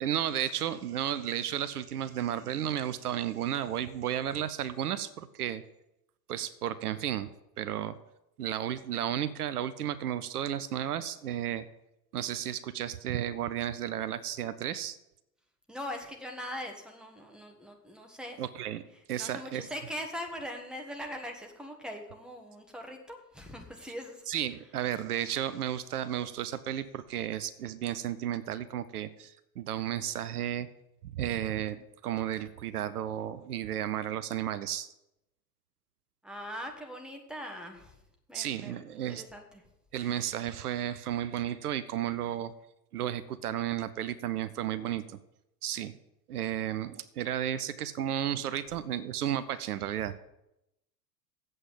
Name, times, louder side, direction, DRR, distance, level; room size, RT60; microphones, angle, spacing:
voice 1, 0.0-5.6 6.3-8.0 8.4-11.7 12.1-15.0 18.4-18.8 19.1-19.7 24.3-30.7 31.0-34.9 38.3-39.2 39.9-42.5 42.9-45.2 45.6-45.9 46.3-50.1, right 11 dB, 65° right, 14 dB, 0.7 m, -33 dB
voice 2, 15.7-18.4 19.2-24.2 36.2-37.9 38.3-39.4, equal, ahead, 3 dB, 1.7 m, -41 dB
8.0 x 7.9 x 7.5 m, 0.86 s
figure-of-eight pair, 85°, 48 cm